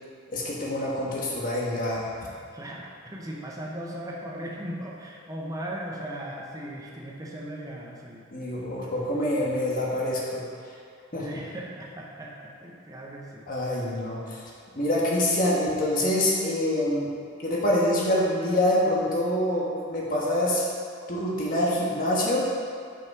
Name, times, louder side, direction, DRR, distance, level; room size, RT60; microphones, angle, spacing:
voice 1, 0.3-2.1 8.3-10.4 11.1-11.2 13.5-14.4 14.7-17.1 17.4-20.7 21.1-22.4, left 1 dB, 45° left, -5 dB, 1.3 m, -25 dB
voice 2, 2.5-8.3 11.1-13.5, right 1 dB, 20° right, -3 dB, 0.9 m, -38 dB
5.6 x 5.5 x 4.7 m, 2.4 s
head